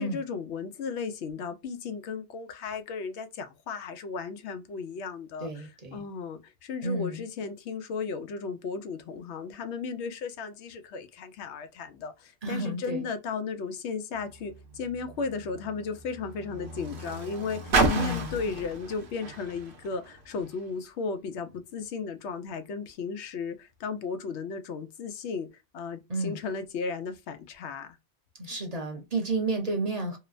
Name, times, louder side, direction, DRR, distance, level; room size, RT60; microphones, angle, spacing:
voice 1, 0.0-25.5 25.7-28.0, left 5 dB, 85° left, 0.9 m, -35 dB
voice 2, 5.4-6.0 6.8-7.2 12.4-13.1 17.9-18.4 26.1-26.4 28.4-30.2, right 2 dB, 40° right, 0.8 m, -31 dB
Car, 14.1-20.7 21.5-21.6, right 3 dB, 70° right, 1.0 m, -33 dB
2.9 x 2.1 x 2.4 m
omnidirectional pair, 1.1 m